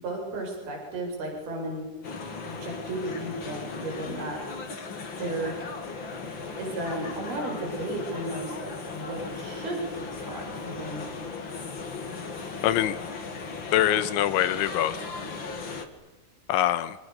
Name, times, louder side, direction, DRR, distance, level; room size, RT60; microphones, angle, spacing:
voice 1, 0.0-1.8 2.4-4.4 5.2-5.6 6.6-11.0, right 1 dB, 55° right, 1 dB, 9.3 m, -34 dB
sound 1, 2.0-15.9, left 4 dB, 35° left, 2.4 m, -37 dB
voice 2, 12.6-13.0 13.7-15.0 16.5-17.0, left 12 dB, 85° left, 13 dB, 3.6 m, -24 dB
29.0 x 27.5 x 7.0 m, 1.2 s
omnidirectional pair, 5.3 m